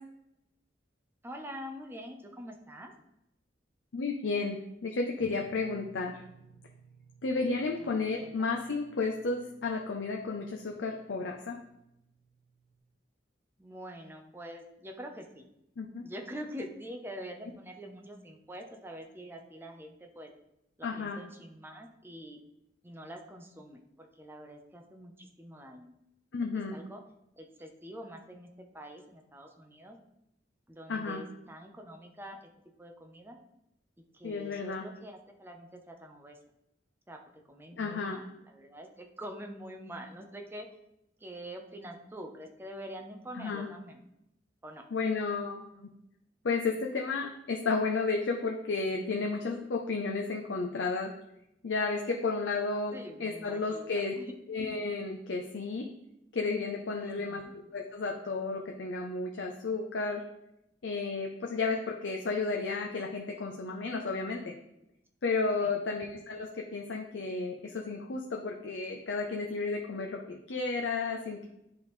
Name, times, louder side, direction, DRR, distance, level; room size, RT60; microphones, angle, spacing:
voice 1, 1.2-2.9 7.8-8.3 13.6-15.4 16.0-20.3 20.8-22.4 22.8-25.9 26.5-27.0 27.4-30.0 30.7-32.4 32.8-33.4 34.1-36.4 37.1-37.2 37.5-40.7 41.2-44.1 44.6-44.8 52.9-54.3 57.0-57.5 65.6-65.9, equal, 15° right, 3 dB, 0.7 m, -45 dB
voice 2, 3.9-4.6 4.8-6.2 7.2-11.6 15.8-16.0 20.8-21.2 26.3-26.8 30.9-31.2 34.2-34.8 37.8-38.2 43.3-43.7 44.9-45.9 46.4-51.1 51.6-54.1 54.5-55.9 56.3-60.2 60.8-64.5 65.2-71.5, left 4 dB, 85° left, 2 dB, 0.6 m, -32 dB
sound 1, 5.2-12.8, right 4 dB, 20° left, 1.7 m, -59 dB
10.5 x 3.5 x 3.2 m, 0.84 s
head